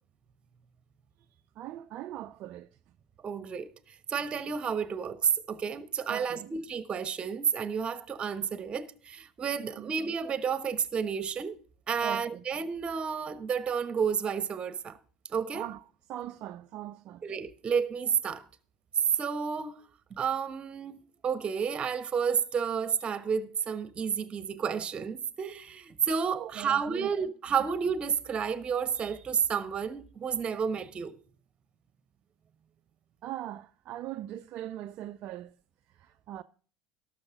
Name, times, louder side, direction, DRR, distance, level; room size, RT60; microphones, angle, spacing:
voice 1, 1.6-2.7 6.1-6.5 9.6-9.9 12.0-12.4 15.5-15.8 16.1-17.2 26.4-27.1 33.2-35.5 36.0-36.4, right 13 dB, 50° right, 0.5 m, -40 dB
voice 2, 3.2-3.7 4.1-11.6 11.9-15.0 15.3-15.7 17.2-18.4 19.2-19.8 20.2-21.0 21.2-31.1, right 6 dB, 35° right, 1.2 m, -31 dB
18.5 x 6.7 x 3.7 m
figure-of-eight pair, 70°, 3 cm